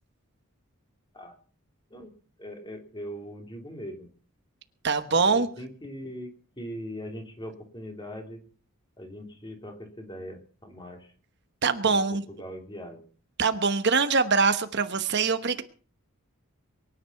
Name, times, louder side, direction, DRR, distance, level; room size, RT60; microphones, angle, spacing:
voice 1, 2.4-4.1 5.1-6.3 6.6-8.4 9.0-11.1 11.9-12.0 12.3-13.0, equal, 20° left, 3 dB, 3.4 m, -40 dB
voice 2, 4.8-5.5 11.6-12.2 13.4-15.6, right 4 dB, 50° right, 10 dB, 1.0 m, -23 dB
23.0 x 10.0 x 5.7 m, 0.41 s
head